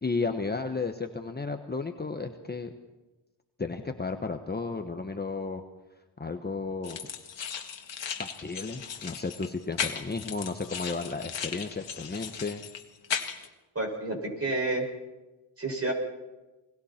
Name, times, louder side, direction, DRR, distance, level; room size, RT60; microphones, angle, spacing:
voice 1, 0.0-2.7 3.6-5.6 6.2-7.0 8.2-12.6, left 4 dB, 20° left, 6 dB, 1.1 m, -33 dB
sound 1, 6.8-13.5, left 7 dB, 70° left, 1.9 m, -36 dB
voice 2, 13.7-14.8 15.6-15.9, right 2 dB, 30° right, 2 dB, 6.2 m, -29 dB
29.0 x 20.5 x 4.4 m, 1.1 s
cardioid pair, 90°, 46 cm